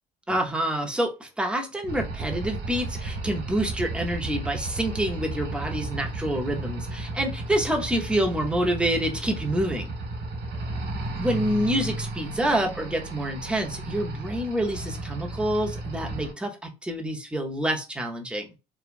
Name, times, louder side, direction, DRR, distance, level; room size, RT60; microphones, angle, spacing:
voice 1, 0.3-9.9 11.2-18.5, right 1 dB, 5° right, 2 dB, 0.7 m, -27 dB
sound 1, 1.9-16.3, right 2 dB, 70° right, 1.2 m, -34 dB
2.9 x 2.2 x 2.5 m, 0.28 s
cardioid pair, 110°, 17 cm